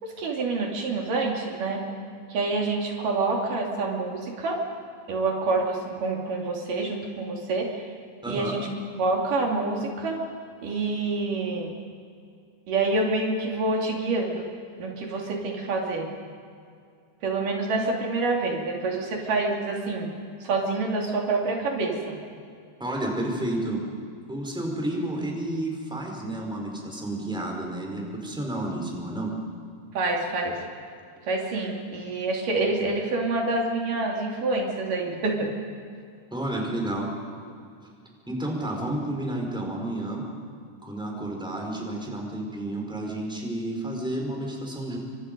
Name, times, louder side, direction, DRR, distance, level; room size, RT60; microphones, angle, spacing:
voice 1, 0.0-1.8 2.3-4.6 5.1-7.8 8.3-8.7 9.0-10.2 10.6-11.7 12.7-14.5 14.8-16.1 17.2-20.1 20.4-22.1 29.9-30.6 31.2-35.5, right 3 dB, 80° right, 0 dB, 4.4 m, -27 dB
voice 2, 8.2-8.6 22.8-23.9 24.3-29.3 36.3-37.1 38.3-40.2 40.8-45.0, right 1 dB, ahead, 0 dB, 4.4 m, -31 dB
30.0 x 25.0 x 5.3 m, 2.3 s
omnidirectional pair, 3.7 m